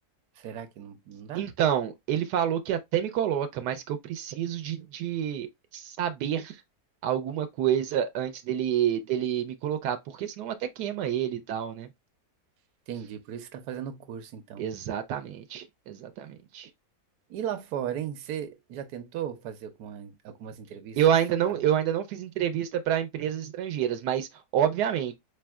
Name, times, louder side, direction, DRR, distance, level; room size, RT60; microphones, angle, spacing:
voice 1, 0.4-1.4 12.9-14.6 17.3-21.0 21.5-21.6, right 9 dB, 75° right, 1.2 m, -37 dB
voice 2, 1.3-5.5 5.7-6.6 7.0-11.9 14.6-16.7 21.0-24.3 24.5-25.2, right 10 dB, 90° right, 1.2 m, -28 dB
4.2 x 3.2 x 2.3 m
omnidirectional pair, 1.7 m